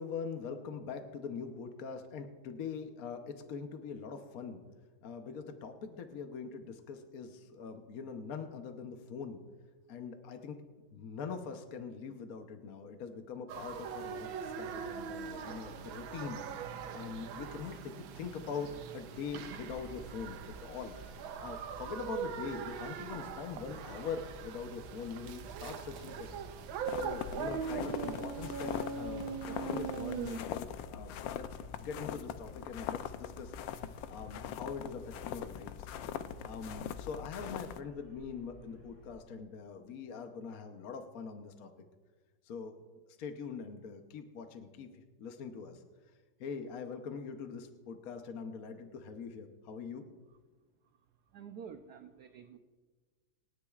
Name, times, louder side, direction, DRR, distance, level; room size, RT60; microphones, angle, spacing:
voice 1, 0.0-4.6 5.0-9.4 9.9-10.6 10.9-16.4 16.9-26.4 27.0-31.5 31.8-35.9 36.4-41.7 42.4-42.8 43.2-45.8 46.4-50.1, left 5 dB, 60° left, 5 dB, 1.1 m, -43 dB
sound 1, 13.5-30.4, right 7 dB, 85° right, 1.5 m, -41 dB
sound 2, 19.5-39.2, equal, 40° left, 4.8 m, -55 dB
sound 3, 26.8-37.8, left 9 dB, 75° left, 1.3 m, -41 dB
voice 2, 51.3-52.6, right 7 dB, 65° right, 7 dB, 1.0 m, -48 dB
27.0 x 10.0 x 2.4 m, 1.4 s
omnidirectional pair, 2.2 m